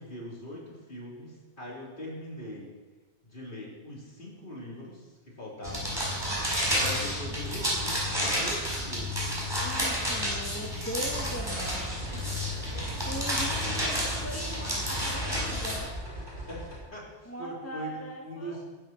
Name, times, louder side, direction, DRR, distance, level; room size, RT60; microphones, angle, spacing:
voice 1, 0.0-2.7 3.2-6.0 6.7-9.3 16.5-16.6 16.9-18.7, equal, 45° left, -5 dB, 4.1 m, -41 dB
sound 1, 5.6-15.8, equal, 20° right, 5.0 m, -30 dB
voice 2, 9.6-15.9 17.2-18.6, equal, 10° left, 0 dB, 1.3 m, -40 dB
sound 2, 11.0-16.8, equal, 80° right, 6.0 m, -40 dB
19.5 x 12.0 x 4.5 m, 1.3 s
omnidirectional pair, 1.2 m